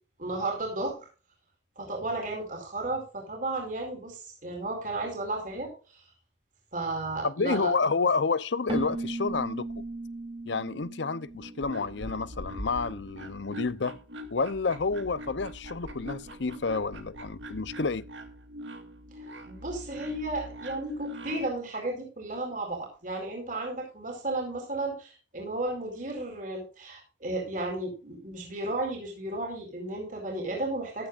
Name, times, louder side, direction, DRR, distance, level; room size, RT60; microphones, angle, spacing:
voice 1, 0.2-1.1 1.8-6.0 6.7-7.7 19.1-31.1, right 2 dB, 45° right, 4.5 m, -34 dB
voice 2, 7.2-9.7 10.5-14.0 14.3-18.1, left 4 dB, 75° left, 0.7 m, -29 dB
Keyboard (musical), 8.7-12.3, right 2 dB, 30° right, 0.9 m, -37 dB
sound 1, 11.3-21.6, equal, 90° right, 2.2 m, -42 dB
14.5 x 11.5 x 2.5 m
head